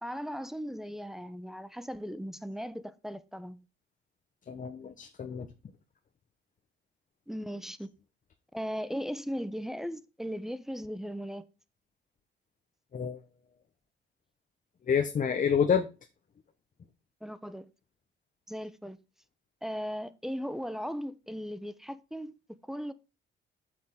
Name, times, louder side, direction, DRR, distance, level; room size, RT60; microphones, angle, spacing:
voice 1, 0.0-3.6 7.3-7.9 8.5-11.4 17.2-17.7 18.5-19.0 19.6-22.9, equal, ahead, 0.9 m, -37 dB
voice 2, 4.5-5.5 12.9-13.2 14.9-15.9, left 7 dB, 40° left, 1.0 m, -28 dB
7.6 x 6.6 x 3.7 m
cardioid pair, 90°, 20 cm